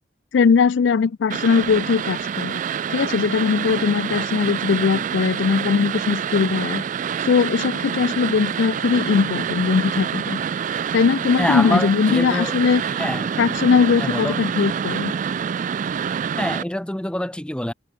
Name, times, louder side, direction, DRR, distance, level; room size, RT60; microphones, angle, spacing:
voice 1, 0.3-2.5 2.9-6.8 7.2-10.4 10.9-12.8 13.4-15.1, left 5 dB, 75° left, 0.4 m, -20 dB
sound 1, 1.3-16.6, right 7 dB, 45° right, 0.3 m, -26 dB
voice 2, 11.4-12.6 12.9-13.4 14.0-14.4 16.4-17.7, left 1 dB, 5° left, 0.6 m, -26 dB
head